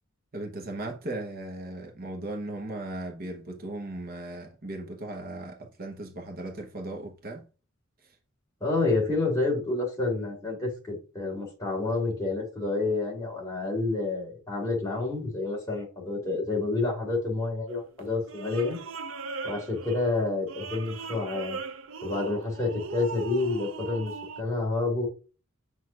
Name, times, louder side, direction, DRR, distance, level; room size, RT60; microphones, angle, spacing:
voice 1, 0.3-7.5 8.0-8.2, right 2 dB, 45° right, 0.9 m, -37 dB
voice 2, 8.6-18.8 19.4-21.6 22.0-24.1 24.4-25.1, left 3 dB, 15° left, 3.3 m, -29 dB
sound 1, 17.7-24.4, right 4 dB, 65° right, 0.6 m, -39 dB
7.4 x 6.1 x 2.4 m
head